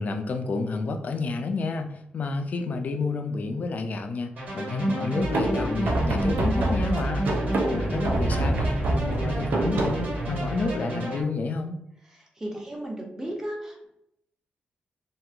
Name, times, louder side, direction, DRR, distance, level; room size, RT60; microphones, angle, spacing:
voice 1, 0.0-7.3 7.7-11.8, left 3 dB, 50° left, 6 dB, 0.3 m, -30 dB
sound 1, 4.4-11.2, right 1 dB, 60° right, 1.3 m, -30 dB
sound 2, 5.2-10.7, right 1 dB, 80° right, 0.4 m, -27 dB
voice 2, 12.1-13.9, right 1 dB, 15° right, -1 dB, 0.7 m, -35 dB
2.9 x 2.5 x 2.3 m, 0.80 s
wide cardioid pair, 115°, 3 cm